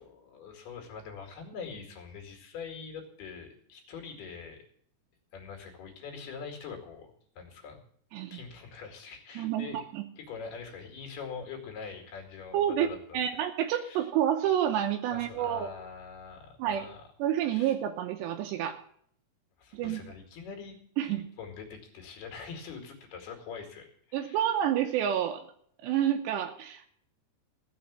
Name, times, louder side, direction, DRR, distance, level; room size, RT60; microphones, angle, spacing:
voice 1, 0.0-4.6 5.3-7.8 8.3-9.9 10.2-13.2 13.7-14.1 15.1-17.1 17.4-17.7 19.6-20.8 21.0-24.5, left 5 dB, 65° left, 3 dB, 4.0 m, -44 dB
voice 2, 9.4-10.0 12.5-12.9 13.1-15.7 16.6-16.9 17.2-18.8 19.7-20.0 21.0-21.3 24.1-25.4 25.8-26.9, right 10 dB, 80° right, 5 dB, 3.0 m, -29 dB
15.0 x 7.0 x 8.5 m, 0.64 s
omnidirectional pair, 5.0 m